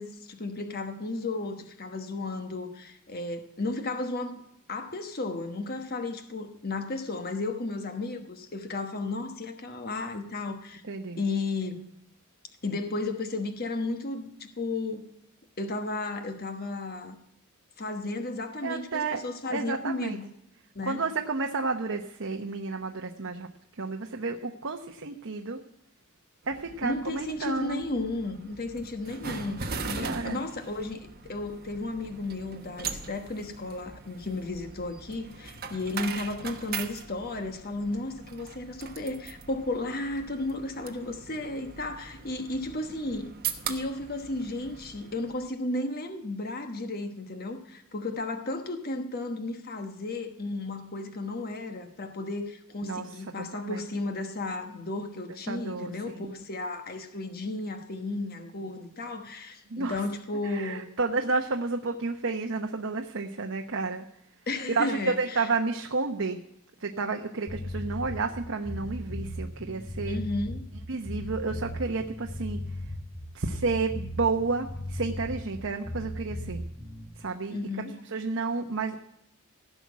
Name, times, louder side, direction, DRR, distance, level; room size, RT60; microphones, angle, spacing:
voice 1, 0.0-4.4 4.7-10.8 11.1-11.9 12.6-15.0 15.6-17.2 17.8-20.3 20.7-21.0 26.8-43.3 43.7-60.8 64.5-65.4 70.1-70.7 77.5-78.0, left 2 dB, 45° left, 1.2 m, -34 dB
voice 2, 10.8-11.2 18.6-19.2 19.5-20.2 20.8-23.5 23.7-25.6 26.5-27.8 30.0-30.4 52.8-53.8 55.5-56.4 59.7-60.1 60.4-64.0 64.7-66.4 66.8-70.2 70.9-72.8 73.3-76.7 77.2-77.6 78.0-79.0, right 3 dB, 60° right, 0.9 m, -31 dB
sound 1, 26.4-45.5, right 6 dB, 45° right, 1.3 m, -41 dB
sound 2, 67.5-77.1, left 1 dB, 15° left, 4.6 m, -36 dB
16.0 x 6.2 x 9.4 m
head